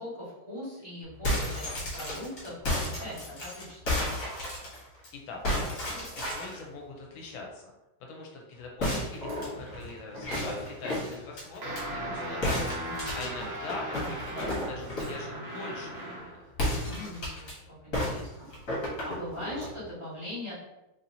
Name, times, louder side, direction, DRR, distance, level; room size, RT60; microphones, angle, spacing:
voice 1, 0.0-4.0 12.7-13.5 16.7-17.6 17.8-18.5 18.8-20.5, left 1 dB, 15° right, -10 dB, 1.3 m, -41 dB
sound 1, 1.1-5.1 5.4-6.6 8.8-11.8 12.4-15.2 16.5-17.5 17.9-19.7, left 1 dB, 55° left, 1.6 m, -32 dB
voice 2, 5.9-7.7 8.0-16.4, left 3 dB, 80° left, 0 dB, 1.4 m, -43 dB
sound 2, 11.6-16.4, right 1 dB, 75° right, 0.6 m, -38 dB
4.2 x 2.8 x 2.6 m, 0.96 s
omnidirectional pair, 2.2 m